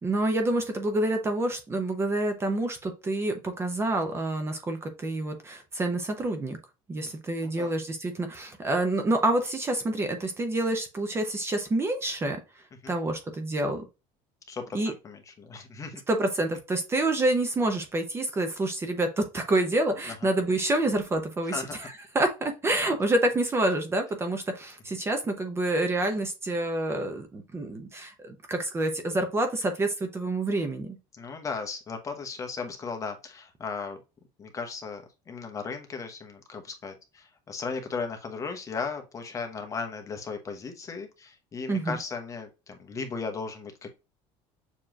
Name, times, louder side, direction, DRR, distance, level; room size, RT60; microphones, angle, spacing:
voice 1, 0.0-6.6 6.9-12.4 12.9-13.8 14.7-14.9 16.1-31.0 41.7-42.0, right 2 dB, 20° right, 0.7 m, -28 dB
voice 2, 14.5-16.0 21.4-21.8 31.1-34.0 34.4-43.9, left 4 dB, 25° left, 0.9 m, -36 dB
6.8 x 3.0 x 2.4 m
cardioid pair, 145°, 13 cm